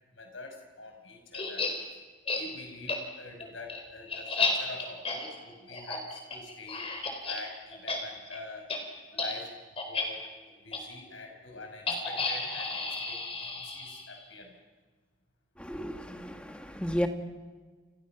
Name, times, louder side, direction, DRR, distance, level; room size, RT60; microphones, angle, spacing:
voice 1, 0.1-1.7 2.4-6.9 7.2-8.7 9.1-9.5 9.9-10.3 10.6-14.6, left 3 dB, 80° left, 3 dB, 5.7 m, -45 dB
sound 1, 1.3-1.7 2.3-2.4 2.9-3.0 3.4-7.4 7.7-8.0 8.2-8.4 8.7-8.8 9.1-9.3 9.8-10.0 10.7-10.8 11.9-14.2, left 3 dB, 30° left, 4.3 m, -32 dB
voice 2, 15.6-17.1, equal, 5° left, 5 dB, 1.7 m, -33 dB
30.0 x 29.5 x 5.9 m, 1.4 s
head